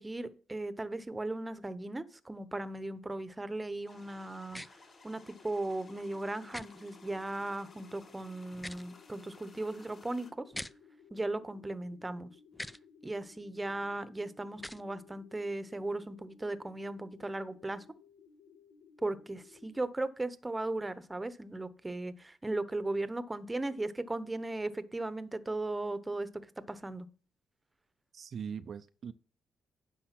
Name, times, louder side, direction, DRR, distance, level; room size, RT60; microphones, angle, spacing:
voice 1, 0.0-4.8 5.0-10.4 11.1-12.3 13.0-17.8 19.0-27.1, right 2 dB, 15° right, 0.9 m, -37 dB
sound 1, 3.9-10.3, left 4 dB, 40° left, 5.3 m, -58 dB
sound 2, 4.5-4.7 6.5-6.7 8.5-8.9 10.5-10.7 12.5-12.8 14.5-14.8, left 1 dB, 5° left, 0.4 m, -42 dB
sound 3, 5.3-19.9, left 6 dB, 80° left, 1.8 m, -60 dB
voice 2, 28.1-29.1, right 7 dB, 55° right, 0.5 m, -41 dB
10.0 x 6.3 x 5.9 m
cardioid pair, 90°, 0 cm